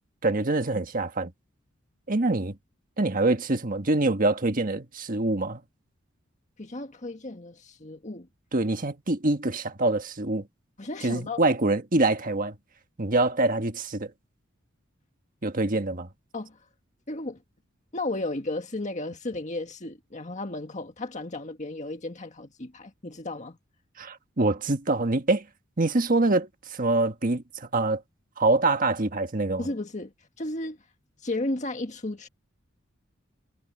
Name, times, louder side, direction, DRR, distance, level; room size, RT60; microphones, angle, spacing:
voice 1, 0.2-1.3 2.1-2.6 3.0-5.6 8.5-10.5 11.0-12.5 13.0-14.1 15.4-16.1 24.0-25.4 25.8-28.0 28.4-29.7, right 2 dB, 45° right, 1.5 m, -25 dB
voice 2, 6.6-8.3 10.8-11.4 16.3-16.6 17.1-17.4 17.9-23.6 29.6-30.8 31.2-32.3, left 2 dB, 35° left, 1.8 m, -34 dB
head